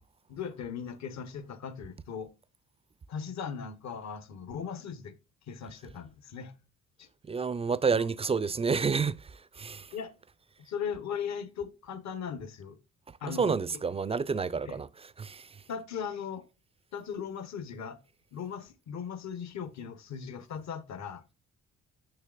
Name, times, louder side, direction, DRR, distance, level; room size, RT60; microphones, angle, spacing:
voice 1, 0.3-2.3 3.1-5.1 5.5-6.5 7.0-7.1 7.9-8.1 9.9-10.1 10.6-12.8 13.2-13.6 14.7-14.8 15.7-16.4 16.9-18.0 18.3-21.2, left 7 dB, 65° left, 1.2 m, -38 dB
voice 2, 7.2-9.9 13.1-15.6, right 5 dB, 20° right, 0.3 m, -30 dB
6.6 x 6.3 x 2.4 m
cardioid pair, 90°, 30 cm